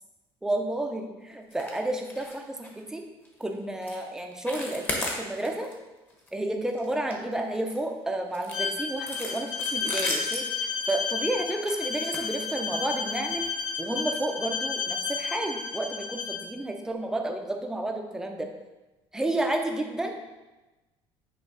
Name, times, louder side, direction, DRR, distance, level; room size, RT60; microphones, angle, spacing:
voice 1, 0.4-3.0 3.4-5.7 6.3-10.5 10.9-13.5 13.8-18.5 19.1-20.1, right 1 dB, 5° right, 3 dB, 0.6 m, -31 dB
sound 1, 1.5-1.8 2.0-2.4 2.6-2.8 3.3-3.4 3.8-4.0 4.3-5.7 6.1-6.3 6.7-7.8 8.3-12.9 13.7-13.8 14.2-14.3 14.7-14.8, left 1 dB, 20° left, 1.0 m, -36 dB
Bowed string instrument, 8.5-16.4, left 5 dB, 50° left, 0.9 m, -32 dB
8.9 x 3.0 x 4.9 m, 1.1 s
cardioid pair, 160°, 10 cm